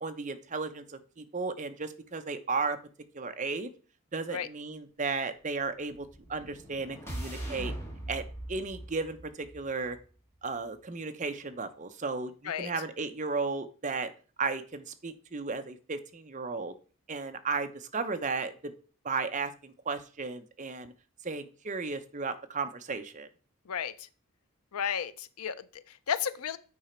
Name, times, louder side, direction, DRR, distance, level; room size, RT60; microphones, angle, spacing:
voice 1, 0.0-2.8 3.1-3.7 4.1-7.7 8.1-10.0 10.4-14.1 14.4-16.7 17.1-18.7 19.0-20.9 21.2-23.3, right 4 dB, 35° right, 8 dB, 0.7 m, -34 dB
sound 1, 5.9-10.1, right 1 dB, 10° left, 1.8 m, -41 dB
voice 2, 23.7-24.1 24.7-26.6, left 8 dB, 80° left, 15 dB, 0.5 m, -33 dB
8.3 x 4.9 x 4.4 m, 0.38 s
head